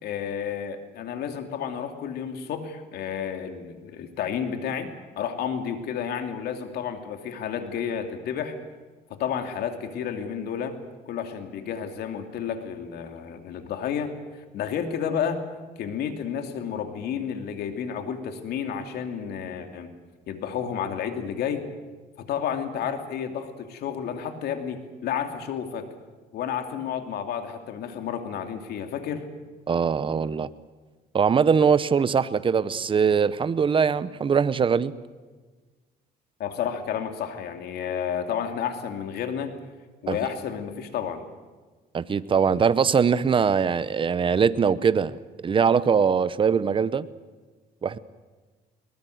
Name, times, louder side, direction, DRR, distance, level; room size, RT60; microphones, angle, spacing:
voice 1, 0.0-8.5 9.1-10.8 11.1-14.1 14.5-15.4 15.8-19.9 20.3-21.6 22.2-25.9 26.3-29.3 36.4-39.5 40.0-41.2, left 8 dB, 70° left, 6 dB, 2.7 m, -31 dB
voice 2, 29.7-30.5 31.1-34.9 40.1-40.2 41.9-47.1 47.8-48.0, right 6 dB, 30° right, 16 dB, 0.9 m, -22 dB
22.0 x 20.0 x 7.9 m, 1.3 s
cardioid pair, 110°, 17 cm